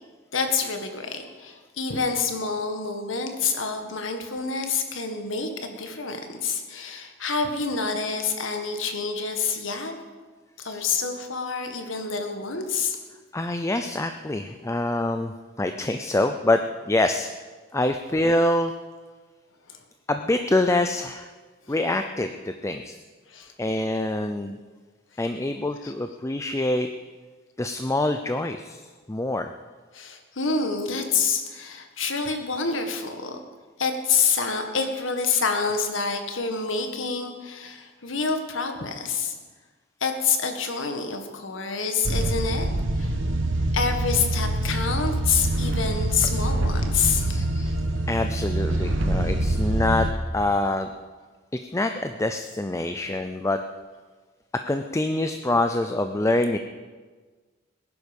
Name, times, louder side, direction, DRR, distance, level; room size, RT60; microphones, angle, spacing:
voice 1, 0.3-10.0 10.6-13.0 19.7-19.8 21.7-21.8 23.3-23.5 25.8-25.9 29.9-33.4 33.8-39.4 40.0-42.7 43.0-43.2 43.7-47.4 52.8-52.9, left 5 dB, 80° left, 5 dB, 1.7 m, -27 dB
voice 2, 13.3-16.6 16.9-17.3 17.7-18.7 20.1-21.3 21.7-23.0 23.6-24.6 25.2-26.9 27.6-28.8 29.1-29.5 47.3-47.7 48.1-50.1 50.3-50.9 51.5-53.6 54.5-56.6, left 2 dB, 15° left, 7 dB, 0.5 m, -25 dB
sound 1, 42.0-50.1, right 1 dB, 75° right, 1.2 m, -25 dB
19.0 x 11.0 x 5.3 m, 1.4 s
head